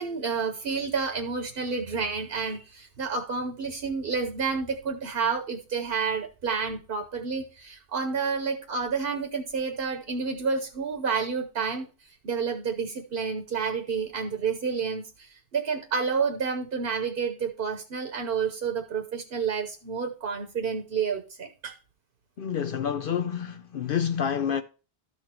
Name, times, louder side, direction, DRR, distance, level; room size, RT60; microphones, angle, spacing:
voice 1, 0.0-11.9 12.2-21.8, right 5 dB, 55° right, 1.1 m, -30 dB
voice 2, 22.4-24.6, left 8 dB, 60° left, 0.7 m, -28 dB
13.0 x 4.3 x 4.3 m
omnidirectional pair, 1.2 m